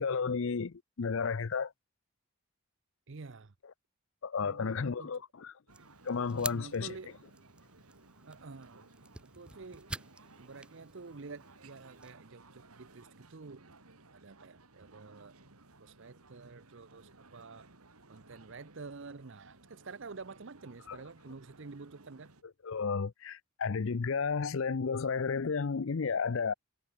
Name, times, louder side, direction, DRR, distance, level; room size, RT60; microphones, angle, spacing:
voice 1, 0.0-1.7 4.2-5.5 6.0-6.9 20.9-21.0 22.6-26.5, left 5 dB, 60° left, 0.5 m, -32 dB
voice 2, 3.1-3.5 4.4-5.2 6.3-7.1 8.3-8.9 9.2-9.9 10.4-13.8 14.1-15.3 15.8-17.7 18.1-22.3, right 4 dB, 55° right, 0.7 m, -49 dB
sound 1, 5.7-12.1, right 2 dB, 5° right, 0.6 m, -47 dB
sound 2, 5.7-22.4, right 3 dB, 85° right, 3.3 m, -59 dB
head